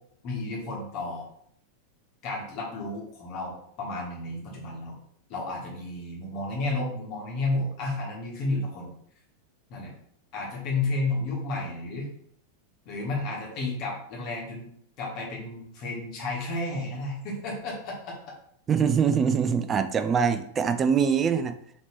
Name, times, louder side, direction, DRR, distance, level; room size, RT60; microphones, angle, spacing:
voice 1, 0.2-1.3 2.2-5.0 5.3-8.9 9.7-9.9 10.3-12.1 12.9-14.7 15.0-18.1, left 2 dB, 40° left, -2 dB, 1.1 m, -32 dB
voice 2, 18.7-21.6, right 6 dB, 25° right, 9 dB, 0.3 m, -23 dB
4.1 x 2.9 x 3.0 m, 0.67 s
figure-of-eight pair, 90°, 0 cm